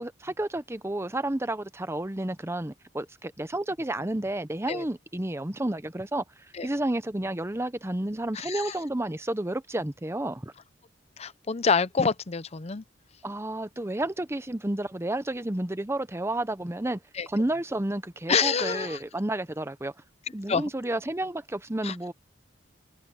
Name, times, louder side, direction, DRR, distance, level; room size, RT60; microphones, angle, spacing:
voice 1, 0.0-6.2 6.6-10.5 13.2-17.0 17.3-19.9 20.3-22.1, right 1 dB, 15° right, 0.8 m, -31 dB
voice 2, 8.3-8.7 11.2-12.8 17.1-17.3 18.3-19.0 20.5-20.6 21.8-21.9, left 5 dB, 35° left, 0.6 m, -27 dB
head